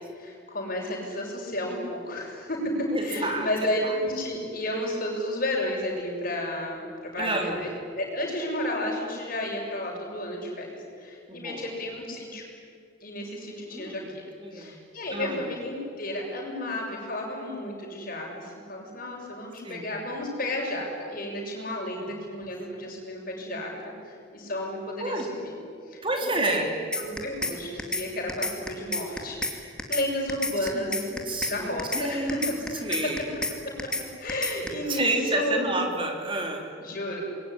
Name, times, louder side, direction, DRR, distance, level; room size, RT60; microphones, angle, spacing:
voice 1, 0.2-7.7 8.0-10.7 11.0-12.4 13.0-14.2 14.5-25.5 25.9-26.7 27.0-31.1 31.5-32.5 34.2-35.7 36.8-37.2, left 1 dB, 45° left, 0 dB, 6.9 m, -32 dB
voice 2, 2.9-4.0 7.2-7.6 11.3-11.7 13.7-14.1 14.4-14.8 15.1-15.4 19.6-19.9 25.0-25.3 26.0-26.7 30.7-32.5 32.8-33.4 34.6-36.8, right 2 dB, 25° right, 3 dB, 3.4 m, -30 dB
sound 1, 26.9-27.5 27.8-28.0 28.3-29.5 29.8-30.0 30.3-31.5 31.8-32.0 32.3-33.5 33.8-34.0 34.3-34.7, left 2 dB, 5° left, 2.5 m, -29 dB
27.0 x 22.0 x 10.0 m, 2.3 s
head